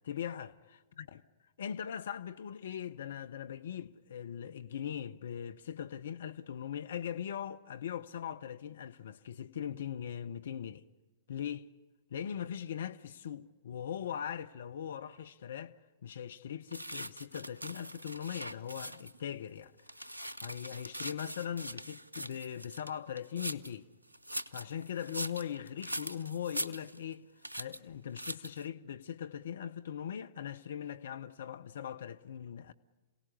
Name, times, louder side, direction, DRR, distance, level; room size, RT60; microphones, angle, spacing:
voice 1, 0.0-1.1 1.6-10.8 11.3-11.7 12.1-15.7 16.0-19.7 20.0-20.1 20.4-23.9 24.5-27.3 27.5-32.7, left 9 dB, 65° left, 0.7 m, -40 dB
sound 1, 16.7-19.2 19.6-23.8 24.1-27.2 27.4-27.8 28.2-28.7, right 1 dB, 90° right, 0.7 m, -42 dB
27.5 x 17.5 x 9.8 m
figure-of-eight pair, 105°, 0 cm